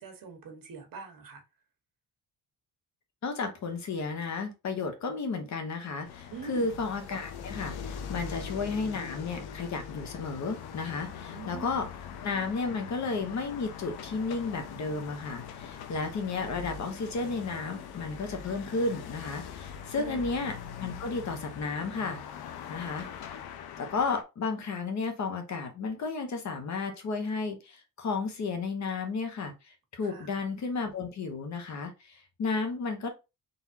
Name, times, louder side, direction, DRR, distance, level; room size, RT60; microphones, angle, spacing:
voice 1, 0.0-1.4 6.3-6.7 11.1-11.9 20.0-20.4 30.0-30.3, right 5 dB, 60° right, 1.4 m, -44 dB
voice 2, 3.2-11.9 12.2-22.2 22.7-23.1 23.8-33.1, left 4 dB, 50° left, 1.0 m, -33 dB
sound 1, 6.0-24.2, left 7 dB, 85° left, 0.7 m, -42 dB
4.0 x 3.4 x 2.8 m
cardioid pair, 160°, 37 cm